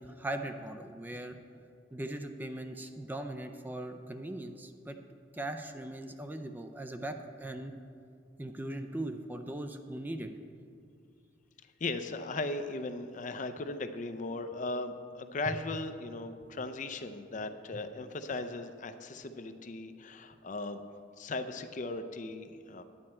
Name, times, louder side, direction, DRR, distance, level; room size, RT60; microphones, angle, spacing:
voice 1, 0.0-1.4 1.9-5.0 5.3-7.7 8.4-10.3, right 1 dB, 10° right, 6 dB, 0.4 m, -39 dB
voice 2, 11.8-20.8 21.2-22.8, left 2 dB, 45° left, 9 dB, 0.5 m, -37 dB
9.7 x 9.5 x 4.3 m, 2.4 s
head